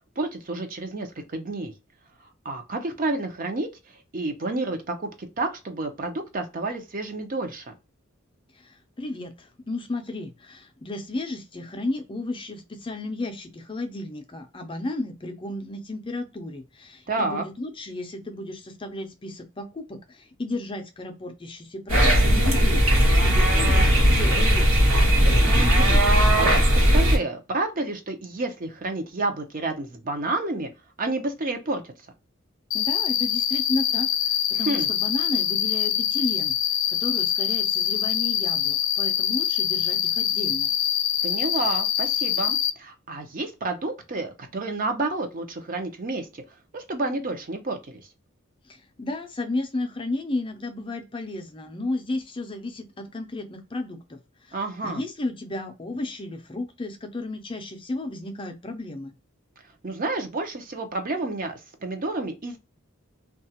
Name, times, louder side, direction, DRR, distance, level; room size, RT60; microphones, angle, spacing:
voice 1, 0.2-1.7 2.4-3.7 4.1-7.7 17.1-17.4 25.4-26.6 26.9-30.7 31.0-31.9 34.7-34.9 41.2-46.4 46.7-48.0 54.5-55.0 59.8-62.6, right 2 dB, 45° right, 0.6 m, -30 dB
voice 2, 8.6-22.8 23.2-25.0 32.7-36.5 36.9-40.7 48.7-54.2 54.8-59.1, left 2 dB, 25° left, 0.5 m, -33 dB
sound 1, 21.9-27.2, equal, 85° right, 1.1 m, -18 dB
Cricket, 32.7-42.7, left 10 dB, 80° left, 0.4 m, -24 dB
2.8 x 2.3 x 2.7 m
head